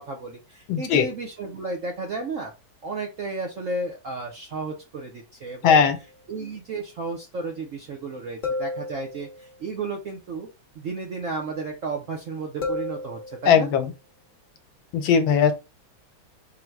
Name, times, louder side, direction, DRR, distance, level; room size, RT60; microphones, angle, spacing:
voice 1, 0.0-2.5 2.8-5.8 6.3-10.5 10.8-13.7, right 3 dB, 70° right, 0.7 m, -33 dB
voice 2, 0.7-1.0 5.6-6.0 13.4-13.9 14.9-15.5, left 7 dB, 85° left, 1.5 m, -18 dB
sound 1, 6.0-6.1 8.4-9.6 12.6-13.7, left 3 dB, 50° left, 0.5 m, -32 dB
3.8 x 2.2 x 4.4 m
omnidirectional pair, 2.2 m